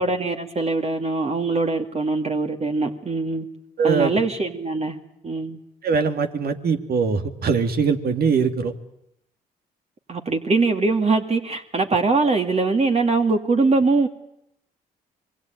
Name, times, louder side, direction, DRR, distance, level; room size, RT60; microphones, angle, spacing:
voice 1, 0.0-3.5 3.8-5.0 5.2-5.6 10.1-14.1, right 3 dB, 35° right, 4 dB, 2.6 m, -22 dB
voice 2, 3.8-4.2 5.8-8.7, right 5 dB, 60° right, 7 dB, 2.6 m, -22 dB
26.5 x 22.0 x 9.2 m, 0.76 s
supercardioid pair, 55°, 18 cm